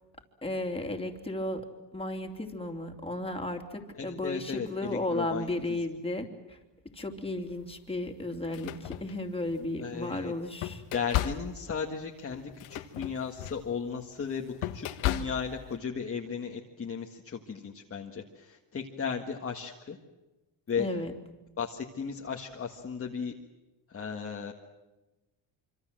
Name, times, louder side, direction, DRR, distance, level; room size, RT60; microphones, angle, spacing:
voice 1, 0.4-1.7 1.9-6.6 6.9-10.8 20.8-21.1, left 1 dB, 10° left, 3 dB, 3.0 m, -34 dB
voice 2, 4.0-5.5 9.8-10.3 10.9-20.0 20.7-20.9 21.6-23.3 23.9-24.5, left 6 dB, 30° left, 1 dB, 1.7 m, -35 dB
sound 1, 7.5-7.7 8.3-9.7 10.2-15.7, left 13 dB, 90° left, 1.6 m, -35 dB
26.0 x 25.5 x 7.7 m, 1.1 s
cardioid pair, 135°, 48 cm